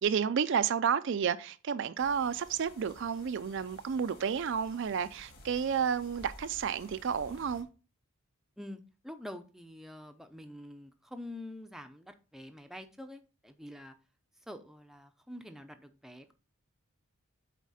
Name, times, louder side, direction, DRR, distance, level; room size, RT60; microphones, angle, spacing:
voice 1, 0.0-7.7, right 7 dB, 55° right, 0.4 m, -31 dB
sound 1, 2.0-7.6, left 1 dB, 45° left, 2.2 m, -54 dB
voice 2, 8.6-13.9 14.5-16.3, left 1 dB, ahead, 0.5 m, -46 dB
8.3 x 4.2 x 4.1 m
head